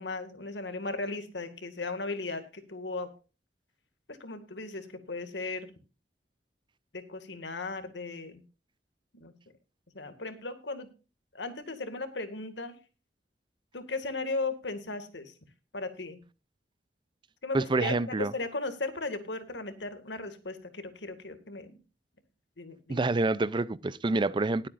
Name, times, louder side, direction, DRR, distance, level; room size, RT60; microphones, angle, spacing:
voice 1, 0.0-3.1 4.1-5.7 6.9-8.4 9.1-9.3 9.9-10.9 11.3-12.8 13.7-15.3 15.7-16.2 17.4-21.8 22.6-23.1, left 3 dB, 85° left, 2.0 m, -36 dB
voice 2, 17.5-18.3 22.9-24.7, right 3 dB, 25° right, 0.4 m, -27 dB
20.0 x 8.6 x 2.5 m
head